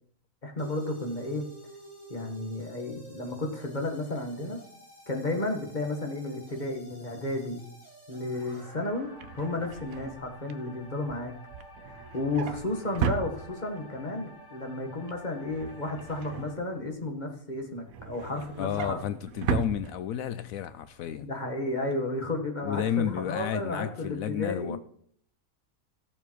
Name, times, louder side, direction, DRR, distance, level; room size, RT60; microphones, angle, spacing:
voice 1, 0.4-1.5 2.1-4.6 5.1-7.6 8.1-11.3 11.9-19.0 21.2-24.8, left 2 dB, 30° left, 3 dB, 2.0 m, -33 dB
sound 1, 0.6-16.6, equal, 15° left, 4.3 m, -50 dB
Drawer open or close, 8.9-14.0 14.3-14.7 14.9-17.1 17.5-20.5 20.9-21.1 21.3-21.4, right 7 dB, 75° right, 1.2 m, -36 dB
voice 2, 18.6-21.3 22.6-24.8, left 10 dB, 75° left, 12 dB, 1.0 m, -31 dB
15.5 x 6.9 x 4.7 m, 0.64 s
omnidirectional pair, 1.5 m